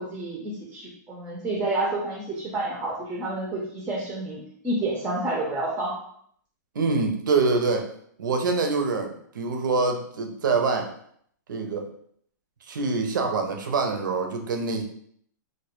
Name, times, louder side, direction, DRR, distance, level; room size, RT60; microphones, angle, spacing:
voice 1, 0.0-6.0, right 2 dB, 15° right, -2 dB, 0.3 m, -29 dB
voice 2, 6.7-7.9 8.2-10.9 11.5-11.9 12.7-14.8, right 4 dB, 85° right, 3 dB, 0.5 m, -25 dB
2.1 x 2.1 x 2.9 m, 0.65 s
hypercardioid pair, 150°, 10 cm